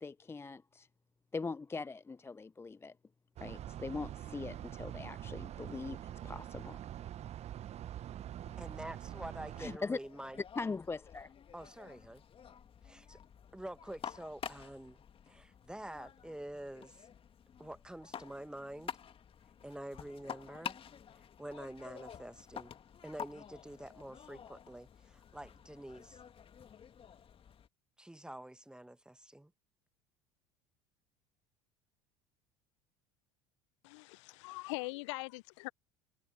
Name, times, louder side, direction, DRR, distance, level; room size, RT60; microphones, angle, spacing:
voice 1, 0.0-0.9 1.3-2.9 3.4-6.8 9.6-10.0 10.6-11.3, left 4 dB, 15° left, 0.6 m, -41 dB
sound 1, 3.4-9.8, right 11 dB, 40° right, 1.1 m, -45 dB
sound 2, 8.4-27.7, left 8 dB, 35° left, 2.1 m, -50 dB
voice 2, 8.6-10.4 11.5-12.2 12.8-13.2 13.5-17.1 17.6-18.9 19.6-20.8 21.4-22.7 23.0-26.2 28.0-29.5, right 1 dB, 5° right, 1.2 m, -47 dB
voice 3, 33.8-35.7, left 25 dB, 65° left, 1.0 m, -42 dB
figure-of-eight pair, 70°, 17 cm